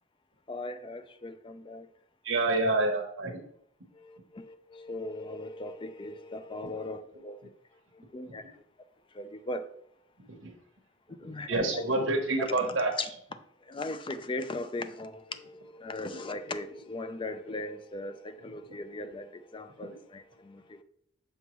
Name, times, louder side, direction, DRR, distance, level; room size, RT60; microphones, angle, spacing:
voice 1, 0.5-1.9 3.9-7.4 7.9-8.6 9.1-9.7 11.2-11.8 12.5-12.7 13.6-20.8, left 2 dB, 25° left, 0.5 m, -39 dB
voice 2, 2.2-3.4 6.6-6.7 8.2-8.5 10.2-10.5 11.2-12.9 18.5-18.6 19.8-19.9, right 2 dB, 80° right, 1.0 m, -29 dB
6.9 x 5.3 x 3.1 m
head